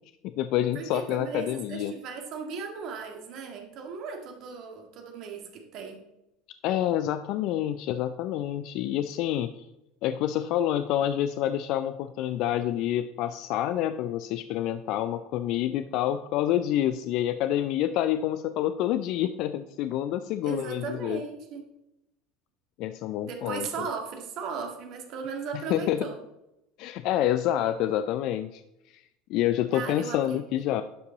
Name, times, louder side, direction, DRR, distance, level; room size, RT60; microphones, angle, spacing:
voice 1, 0.2-1.9 6.6-9.7 10.0-21.2 22.8-23.9 25.5-26.1 26.8-28.6 28.9-29.0 29.3-30.8, left 12 dB, 55° left, 11 dB, 0.4 m, -28 dB
voice 2, 0.8-6.0 20.4-21.6 23.2-26.2 29.7-30.4, right 5 dB, 55° right, 3 dB, 1.8 m, -37 dB
11.5 x 5.3 x 3.9 m, 0.89 s
hypercardioid pair, 75°, 0 cm